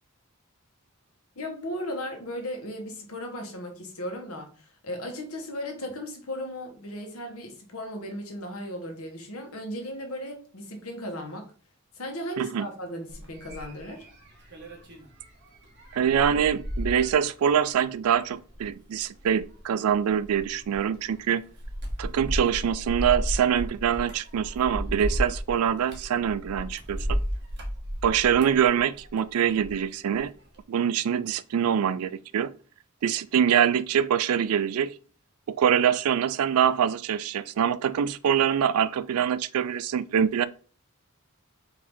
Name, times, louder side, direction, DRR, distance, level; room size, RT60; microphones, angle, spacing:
voice 1, 1.4-11.5 11.9-14.0, left 1 dB, 85° left, 1.2 m, -36 dB
sound 1, 13.1-29.8 30.1-30.6, equal, 55° right, 1.2 m, -34 dB
voice 2, 15.9-21.4 22.0-27.2 28.0-30.3 30.7-32.5 33.0-34.9 35.5-40.5, right 8 dB, 85° right, 0.3 m, -24 dB
4.7 x 2.7 x 3.5 m
head